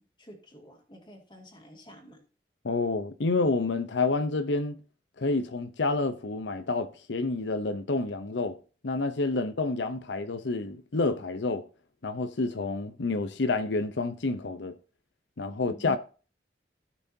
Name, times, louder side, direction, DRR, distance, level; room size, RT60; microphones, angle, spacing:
voice 1, 0.0-2.2 15.5-15.9, equal, 25° left, 2.2 m, -51 dB
voice 2, 2.6-4.8 5.2-8.6 8.8-11.6 12.0-14.7 15.4-16.0, left 3 dB, 90° left, 0.7 m, -29 dB
16.0 x 6.1 x 2.7 m
head